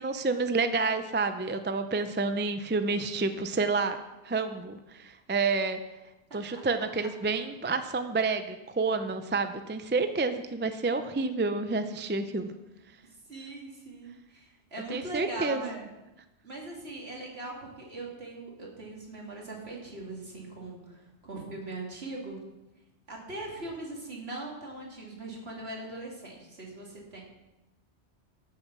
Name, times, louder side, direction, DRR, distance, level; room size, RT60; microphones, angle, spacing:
voice 1, 0.0-4.0 4.2-5.8 6.3-12.5 14.9-15.6, right 3 dB, 15° right, 9 dB, 0.4 m, -29 dB
voice 2, 6.3-6.6 13.3-15.9 16.4-22.4 23.1-27.2, right 2 dB, 60° right, -2 dB, 3.0 m, -40 dB
13.5 x 7.0 x 6.1 m, 1.0 s
omnidirectional pair, 1.2 m